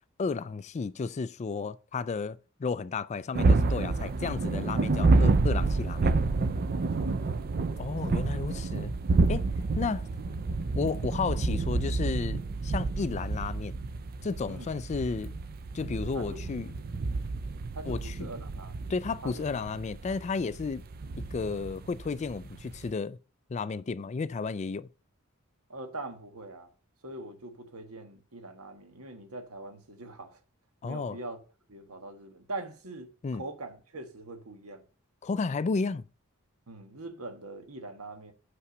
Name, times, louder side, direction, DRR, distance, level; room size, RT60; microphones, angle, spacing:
voice 1, 0.2-6.2 7.8-9.0 9.3-9.5 9.8-10.1 10.8-13.7 14.2-15.4 15.7-16.8 17.9-18.1 18.9-20.8 21.2-23.2 23.5-24.9 30.8-31.2 33.2-33.4 35.2-36.0, left 4 dB, 30° left, 0.3 m, -33 dB
sound 1, 3.3-22.9, right 3 dB, 45° right, 0.4 m, -29 dB
voice 2, 6.8-7.4 9.6-9.8 14.5-14.7 16.1-16.4 16.8-16.9 17.7-18.9 19.2-19.4 25.7-26.7 27.0-30.4 30.8-31.4 31.7-34.8 36.7-38.3, right 2 dB, 80° right, 1.5 m, -43 dB
6.0 x 5.7 x 6.5 m
head